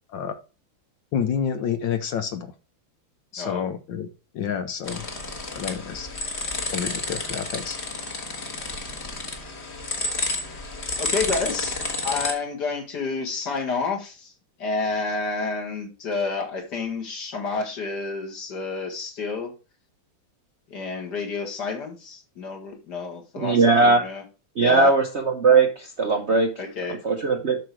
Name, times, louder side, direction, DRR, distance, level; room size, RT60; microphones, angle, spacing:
voice 1, 1.1-2.5 3.3-4.1 4.3-5.0 5.5-6.1 6.7-7.8, left 7 dB, 70° left, 8 dB, 1.4 m, -28 dB
sound 1, 4.8-12.3, left 2 dB, 35° left, 1.6 m, -30 dB
voice 2, 11.0-14.3 14.6-19.5 20.7-24.2 24.6-24.9 26.6-27.0, left 4 dB, 55° left, 2 dB, 2.4 m, -29 dB
voice 3, 23.4-24.0 24.6-26.5 26.9-27.6, right 4 dB, 50° right, 4 dB, 0.9 m, -19 dB
7.7 x 6.0 x 4.7 m, 0.32 s
omnidirectional pair, 2.2 m